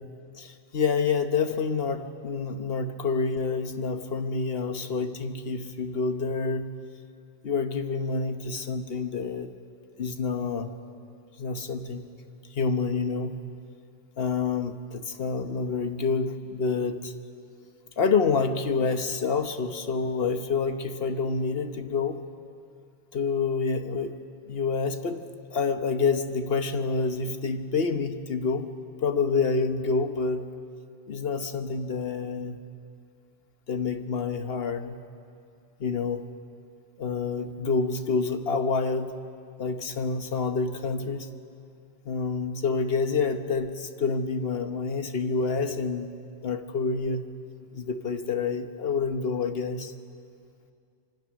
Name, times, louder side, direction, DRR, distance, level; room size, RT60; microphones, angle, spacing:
voice 1, 0.3-6.7 7.4-9.5 10.0-10.7 11.4-12.1 12.5-13.4 14.2-17.1 18.0-22.2 23.1-24.2 24.5-28.7 29.0-30.5 31.1-32.6 33.7-35.0 35.8-36.3 37.0-39.2 39.6-41.3 42.0-46.1 46.4-47.2 47.7-49.9, left 4 dB, 50° left, 8 dB, 1.3 m, -28 dB
25.5 x 24.0 x 6.4 m, 2.4 s
omnidirectional pair, 1.3 m